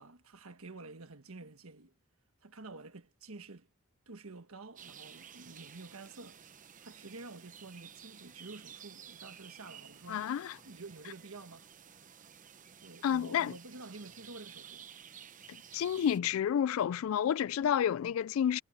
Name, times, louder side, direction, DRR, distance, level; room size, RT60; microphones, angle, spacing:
voice 1, 0.0-1.9 2.4-3.7 4.1-6.4 6.8-10.3 10.6-11.7 12.8-14.9, right 3 dB, 80° right, 1.4 m, -49 dB
sound 1, 4.8-16.2, right 8 dB, 40° right, 0.9 m, -53 dB
voice 2, 10.1-10.6 13.0-13.5 15.5-18.6, left 9 dB, 75° left, 0.3 m, -30 dB
head